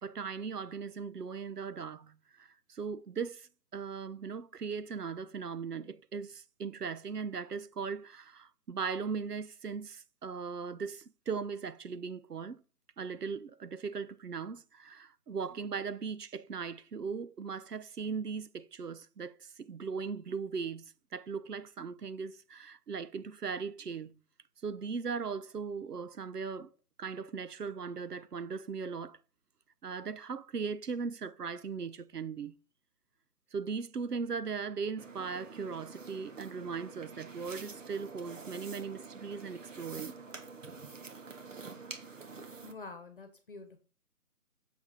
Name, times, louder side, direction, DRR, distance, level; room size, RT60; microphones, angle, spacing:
voice 1, 0.0-12.6 13.0-24.1 24.6-26.7 27.0-29.2 29.8-32.5 33.5-40.2, right 5 dB, 80° right, 1.0 m, -38 dB
sound 1, 35.0-42.7, right 4 dB, 55° right, 1.8 m, -47 dB
voice 2, 42.6-43.8, left 3 dB, 35° left, 1.2 m, -47 dB
7.3 x 6.4 x 4.9 m
figure-of-eight pair, 170°, 46 cm